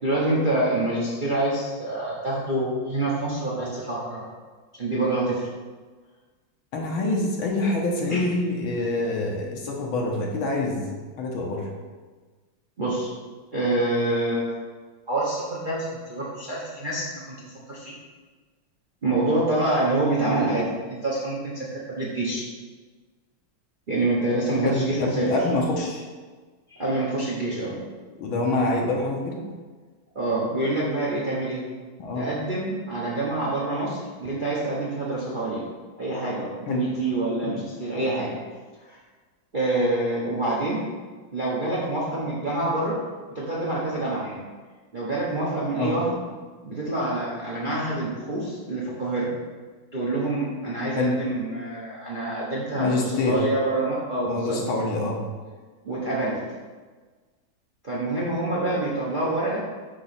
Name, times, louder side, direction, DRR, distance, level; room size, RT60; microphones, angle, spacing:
voice 1, 0.0-4.2 4.8-5.4 8.1-8.3 12.8-13.1 13.5-14.5 15.1-17.1 17.4-17.9 19.0-22.5 23.9-25.3 26.7-27.8 30.1-31.6 32.2-35.6 36.0-38.3 38.8-39.0 39.5-40.8 41.3-43.0 43.3-44.4 44.9-46.1 46.6-49.3 49.9-52.9 53.2-54.6 55.8-56.4 57.8-59.6, right 2 dB, 35° right, -5 dB, 0.8 m, -26 dB
voice 2, 6.7-10.9 11.2-11.7 24.6-26.1 28.2-29.4 32.0-32.3 36.7-36.9 37.4-37.6 45.8-46.0 50.9-51.2 52.8-53.4 54.3-55.2, left 2 dB, 75° left, -1 dB, 1.9 m, -26 dB
8.3 x 3.1 x 5.7 m, 1.4 s
omnidirectional pair, 2.4 m